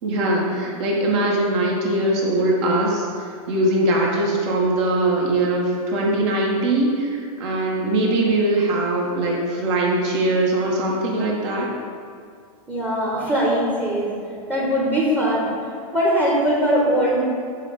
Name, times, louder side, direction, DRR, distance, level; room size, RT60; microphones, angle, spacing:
voice 1, 0.0-11.7, right 1 dB, 50° right, -2 dB, 1.5 m, -21 dB
voice 2, 12.7-14.1 14.5-17.2, equal, 10° right, -5 dB, 1.1 m, -21 dB
6.5 x 3.3 x 5.2 m, 2.2 s
hypercardioid pair, 120°, 19 cm